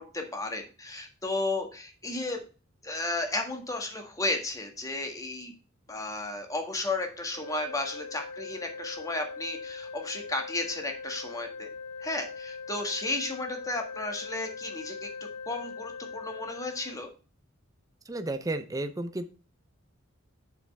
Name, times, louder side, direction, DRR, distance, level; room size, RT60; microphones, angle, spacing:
voice 1, 0.0-2.4 2.8-5.5 5.9-11.7 12.0-15.1 15.5-17.1, left 2 dB, 15° left, 4 dB, 1.6 m, -33 dB
sound 1, 7.3-17.0, left 4 dB, 35° left, 2.8 m, -41 dB
voice 2, 18.1-19.3, right 2 dB, 15° right, 9 dB, 0.6 m, -32 dB
7.3 x 7.0 x 3.3 m, 0.35 s
head